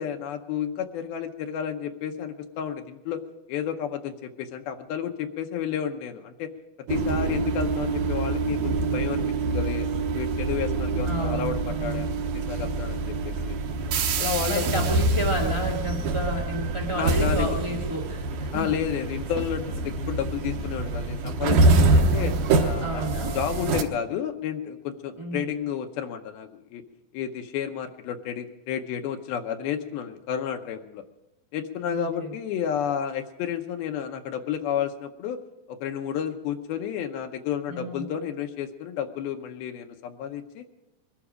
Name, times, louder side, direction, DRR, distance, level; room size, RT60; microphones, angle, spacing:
voice 1, 0.0-3.2 3.5-6.5 6.9-9.3 9.5-13.6 14.2-14.8 17.0-17.6 18.5-23.0 23.3-26.8 27.1-31.0 31.5-35.4 35.7-40.7, left 8 dB, 80° left, 5 dB, 2.7 m, -31 dB
sound 1, 6.9-23.8, right 3 dB, 70° right, 2.4 m, -25 dB
voice 2, 11.1-12.1 14.5-18.7 22.8-23.4 25.2-25.5 31.9-32.3 37.7-38.0, right 1 dB, 45° right, 0 dB, 0.4 m, -31 dB
22.0 x 12.0 x 5.0 m, 0.96 s
omnidirectional pair, 4.3 m